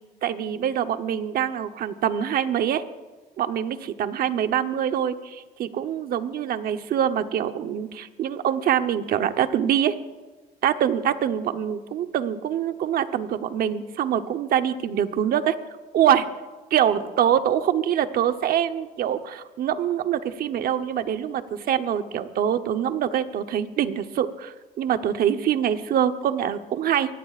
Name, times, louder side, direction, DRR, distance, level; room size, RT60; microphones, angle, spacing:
voice 1, 0.2-2.8 3.4-9.9 10.6-15.6 15.9-16.3 16.7-27.2, right 9 dB, 60° right, 9 dB, 1.0 m, -24 dB
23.5 x 18.5 x 2.5 m, 1.2 s
cardioid pair, 110°, 17 cm